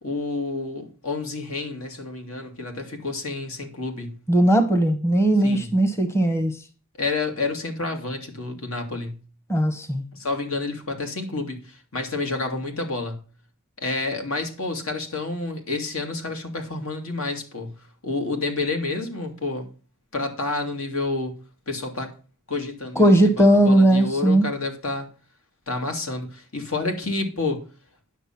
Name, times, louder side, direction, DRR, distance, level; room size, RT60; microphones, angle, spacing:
voice 1, 0.0-4.2 5.4-5.7 7.0-9.2 10.1-13.2 13.8-17.7 18.0-19.7 20.1-21.3 21.7-22.1 22.5-25.1 25.7-27.6, left 3 dB, 75° left, 2.5 m, -29 dB
voice 2, 4.3-6.6 9.5-10.0 23.0-24.5, right 1 dB, 10° left, 0.9 m, -18 dB
10.0 x 6.3 x 5.8 m
head